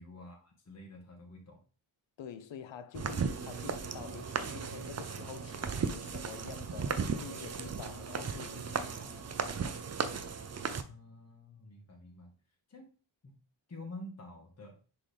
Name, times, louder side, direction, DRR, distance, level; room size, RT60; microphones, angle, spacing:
voice 1, 0.0-1.6 10.8-12.3 12.7-12.9 13.2-13.4 13.7-14.8, left 1 dB, 30° left, 1.6 m, -49 dB
voice 2, 2.2-9.8, left 8 dB, 65° left, 0.9 m, -48 dB
sound 1, 2.9-10.8, right 5 dB, 35° right, 0.6 m, -36 dB
10.0 x 3.8 x 3.4 m
wide cardioid pair, 115°, 49 cm